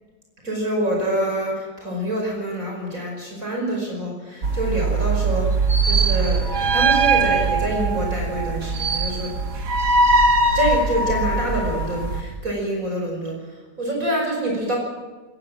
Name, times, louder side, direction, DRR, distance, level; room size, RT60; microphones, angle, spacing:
voice 1, 0.4-5.5 5.8-9.3 10.5-14.8, right 1 dB, 50° right, 0 dB, 5.8 m, -26 dB
sound 1, 4.4-12.2, right 3 dB, 70° right, 2.4 m, -21 dB
21.0 x 19.5 x 7.6 m, 1.3 s
omnidirectional pair, 1.8 m